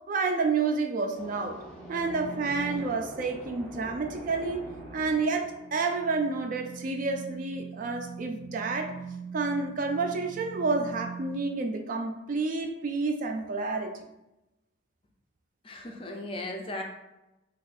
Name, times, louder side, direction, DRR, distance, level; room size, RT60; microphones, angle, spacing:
voice 1, 0.1-1.6 1.9-4.6 4.9-8.9 9.3-13.9, right 4 dB, 40° right, 4 dB, 0.3 m, -29 dB
sound 1, 1.1-6.8, equal, 5° left, 0.7 m, -46 dB
sound 2, 1.7-11.4, right 5 dB, 70° right, 0.7 m, -43 dB
voice 2, 15.6-16.8, left 1 dB, 25° left, 2 dB, 0.4 m, -36 dB
2.7 x 2.3 x 4.0 m, 0.95 s
head